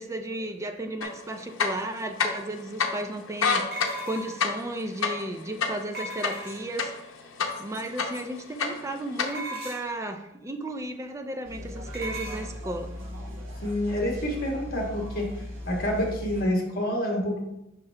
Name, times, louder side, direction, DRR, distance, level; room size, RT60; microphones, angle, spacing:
voice 1, 0.0-6.9 7.6-12.9, right 1 dB, 15° right, 6 dB, 0.4 m, -34 dB
sound 1, 1.0-1.1 1.5-2.5 2.8-2.9 3.3-7.1 7.4-8.2 8.5-9.3, left 5 dB, 80° left, 0.8 m, -27 dB
sound 2, 3.7-4.5 5.9-6.8 9.3-10.0 11.9-12.5, right 1 dB, 50° right, 1.6 m, -37 dB
sound 3, 11.4-16.4, left 1 dB, 70° right, 1.2 m, -38 dB
voice 2, 13.6-15.3 15.6-17.5, left 1 dB, 45° left, -1 dB, 1.6 m, -28 dB
5.7 x 5.5 x 3.3 m, 0.88 s
head